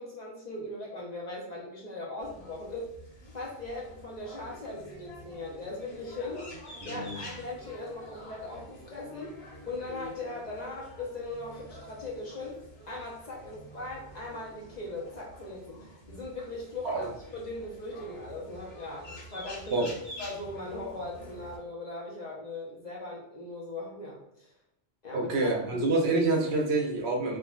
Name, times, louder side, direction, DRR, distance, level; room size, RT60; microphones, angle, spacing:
voice 1, 0.0-2.9 3.3-6.4 6.8-12.6 12.9-17.1 17.3-19.9 20.2-24.5 25.0-25.8, left 2 dB, 50° left, -3 dB, 0.6 m, -39 dB
sound 1, 2.2-21.6, equal, 70° left, 1.2 m, -48 dB
voice 2, 6.8-7.3 16.8-17.1 19.7-19.9 25.1-27.4, right 2 dB, 70° right, 1 dB, 0.9 m, -27 dB
3.5 x 2.1 x 2.3 m, 0.82 s
omnidirectional pair, 1.2 m